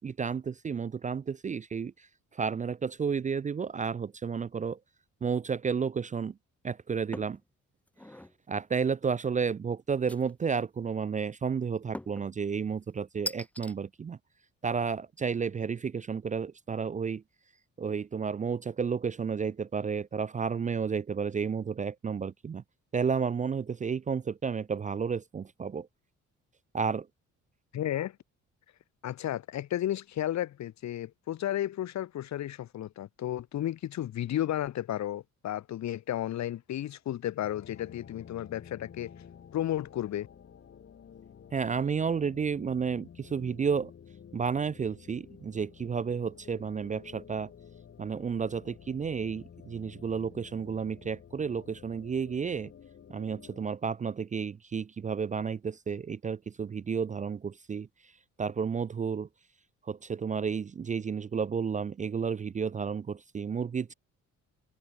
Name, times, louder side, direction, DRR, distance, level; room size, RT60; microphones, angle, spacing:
voice 1, 0.0-1.9 2.4-4.8 5.2-6.3 6.6-7.4 8.5-14.2 14.6-17.2 17.8-22.6 22.9-25.9 26.7-27.1 41.5-43.9 44.3-47.5 48.0-52.7 53.1-57.9 58.4-59.3 59.9-63.9, right 6 dB, 25° right, 0.4 m, -31 dB
sound 1, 7.1-7.4 7.9-8.4 10.1-10.6 11.9-12.3 13.3-13.7, left 1 dB, 5° left, 0.8 m, -40 dB
voice 2, 27.7-28.2 29.0-39.1 39.5-40.3, left 12 dB, 65° left, 1.1 m, -33 dB
sound 2, 37.4-53.7, left 8 dB, 45° left, 1.5 m, -52 dB
cardioid pair, 90°, 30 cm